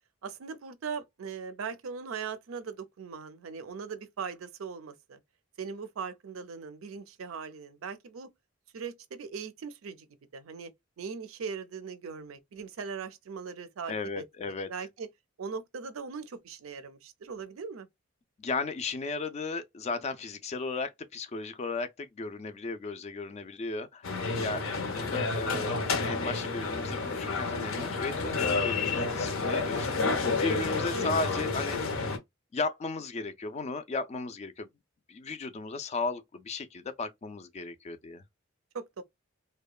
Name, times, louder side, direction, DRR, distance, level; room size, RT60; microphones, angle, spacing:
voice 1, 0.2-5.2 5.6-8.3 8.7-10.1 10.3-10.7 11.0-15.1 15.4-17.9 24.4-24.8 30.9-31.1 38.7-39.0, right 5 dB, 80° right, 0.5 m, -40 dB
voice 2, 13.9-14.7 18.4-25.8 26.0-30.1 30.4-32.0 32.5-34.7 35.1-38.2, left 3 dB, 30° left, 0.3 m, -35 dB
sound 1, 24.0-32.2, left 4 dB, 75° left, 0.6 m, -30 dB
2.8 x 2.2 x 2.3 m
head